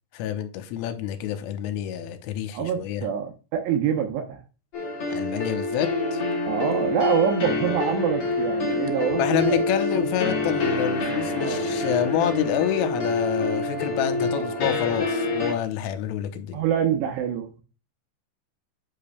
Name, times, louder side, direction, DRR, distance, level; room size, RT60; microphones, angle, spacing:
voice 1, 0.1-3.1 5.1-6.2 9.1-16.6, left 9 dB, 85° left, 3.3 m, -28 dB
voice 2, 2.5-4.4 6.5-9.7 11.4-11.7 14.3-14.6 16.5-17.6, right 8 dB, 75° right, 2.7 m, -26 dB
sound 1, 4.7-15.5, left 2 dB, 55° left, 1.6 m, -26 dB
8.7 x 6.8 x 2.2 m
omnidirectional pair, 5.8 m